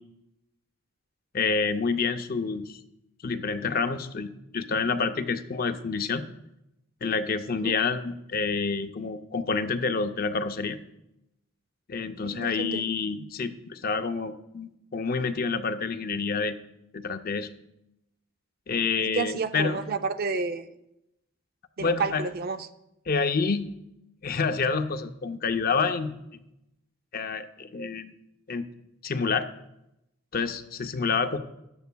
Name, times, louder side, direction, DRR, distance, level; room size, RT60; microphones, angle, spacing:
voice 1, 1.3-2.8 3.2-6.2 7.0-10.8 11.9-16.6 16.9-17.5 18.7-19.8 21.8-22.2 23.1-23.7 24.2-26.4 27.1-28.1 28.5-28.7 29.0-29.5 30.3-31.4, left 4 dB, 45° left, 9 dB, 0.5 m, -28 dB
voice 2, 12.2-12.8 19.0-20.7 21.8-22.6, right 4 dB, 45° right, 10 dB, 0.5 m, -30 dB
14.0 x 10.5 x 2.3 m, 0.87 s
head